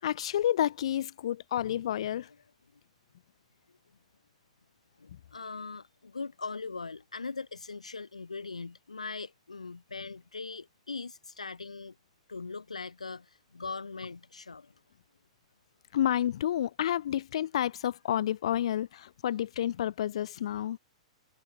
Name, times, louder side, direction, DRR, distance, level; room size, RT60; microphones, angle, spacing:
voice 1, 0.0-2.3 15.9-20.8, left 11 dB, 60° left, 5.0 m, -30 dB
voice 2, 5.0-12.0 12.3-14.7, left 4 dB, 85° left, 3.9 m, -40 dB
figure-of-eight pair, 110°, 3 cm